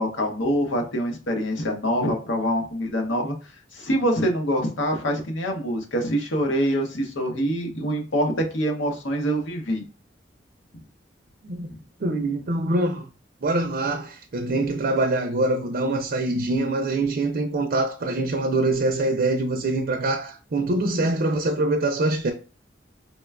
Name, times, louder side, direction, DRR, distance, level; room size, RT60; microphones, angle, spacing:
voice 1, 0.0-3.3 3.7-9.8 11.7-11.8, equal, 85° left, 0.9 m, -25 dB
voice 2, 12.0-13.1 13.4-22.3, right 2 dB, 50° right, 0.4 m, -24 dB
4.3 x 2.2 x 2.2 m
head